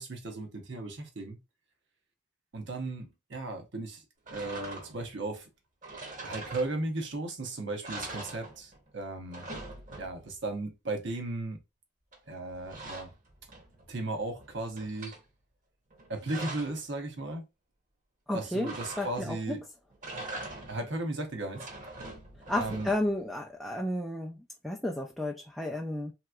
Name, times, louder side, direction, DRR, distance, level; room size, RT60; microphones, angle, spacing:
voice 1, 0.0-1.4 2.5-4.0 4.3-5.5 6.2-9.5 10.0-11.6 12.3-13.1 13.9-15.1 16.1-17.4 18.3-19.6 20.7-21.7 22.5-22.9, right 2 dB, 70° right, 0.9 m, -36 dB
sound 1, 4.3-5.1 5.8-7.1 7.4-7.5 7.8-8.9 9.2-10.4 12.1-13.9 14.3-15.2 15.9-16.9 18.6-19.4 19.9-20.9 21.4-23.2, right 2 dB, 40° right, 0.9 m, -43 dB
voice 2, 18.3-18.7 19.0-19.6 22.5-24.4 24.6-26.1, left 1 dB, ahead, 0.3 m, -32 dB
3.4 x 2.9 x 2.3 m
head